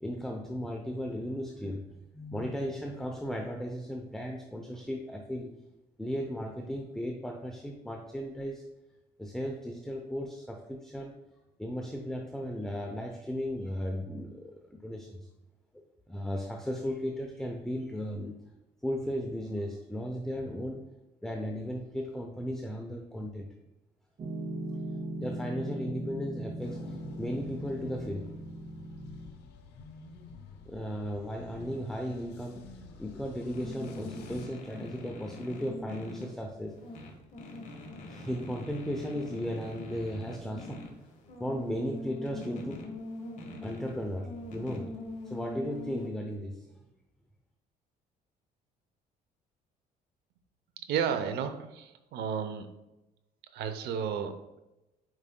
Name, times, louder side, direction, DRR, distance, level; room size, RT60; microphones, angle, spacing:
voice 1, 0.0-1.9 2.1-5.5 6.0-8.7 9.2-11.1 11.6-15.3 15.7-18.4 18.8-20.9 21.2-23.5 25.2-28.3 30.6-36.8 38.1-40.9 41.4-42.9 43.6-45.0 45.3-46.8, equal, 5° left, 2 dB, 0.6 m, -36 dB
Piano, 24.2-29.3, right 1 dB, 40° right, 0.9 m, -39 dB
sound 1, 26.6-34.5, left 4 dB, 85° left, 0.8 m, -49 dB
sound 2, 33.5-46.1, left 2 dB, 50° left, 1.5 m, -43 dB
voice 2, 50.9-52.7 53.5-54.6, right 7 dB, 75° right, 9 dB, 0.7 m, -32 dB
8.9 x 4.8 x 2.2 m, 0.97 s
cardioid pair, 110°, 17 cm